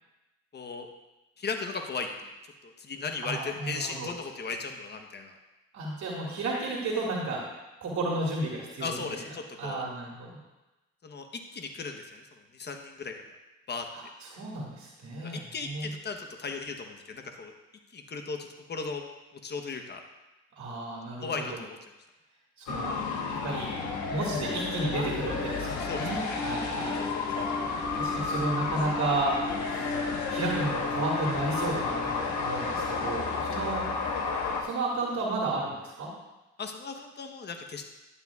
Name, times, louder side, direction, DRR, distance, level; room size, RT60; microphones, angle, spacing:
voice 1, 0.5-0.9 1.4-2.3 2.6-5.4 8.8-9.8 11.0-11.3 11.5-12.3 12.5-13.1 13.7-13.8 15.2-17.5 17.9-19.0 19.4-20.0 21.2-21.8 25.6-26.4 36.6-37.9, left 4 dB, 35° left, 4 dB, 1.0 m, -37 dB
voice 2, 3.2-4.1 5.7-7.5 7.8-9.2 9.6-10.4 13.9-15.9 20.6-21.6 22.6-23.0 23.3-23.7 24.1-27.0 27.3-29.3 29.7-29.9 30.3-33.9 34.6-36.1, right 2 dB, 65° right, -4 dB, 2.1 m, -33 dB
sound 1, 22.7-34.6, left 4 dB, 75° left, 1.3 m, -32 dB
Piano, 23.7-35.1, left 2 dB, 5° left, 0.5 m, -39 dB
11.0 x 9.7 x 2.4 m, 1.1 s
cardioid pair, 90°, 30 cm